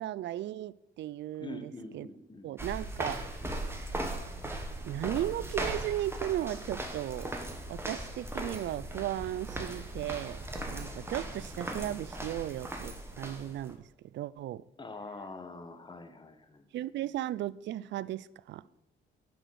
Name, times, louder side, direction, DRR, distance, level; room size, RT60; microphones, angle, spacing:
voice 1, 0.0-2.1 2.4-3.3 4.8-7.3 7.7-10.4 10.7-14.6 16.7-18.6, right 13 dB, 65° right, 0.4 m, -36 dB
voice 2, 1.4-2.5 3.4-3.5 14.8-16.7, left 3 dB, 25° left, 1.2 m, -45 dB
sound 1, 2.6-13.7, right 1 dB, 10° right, 1.5 m, -38 dB
9.8 x 5.1 x 6.3 m
cardioid pair, 90°, 20 cm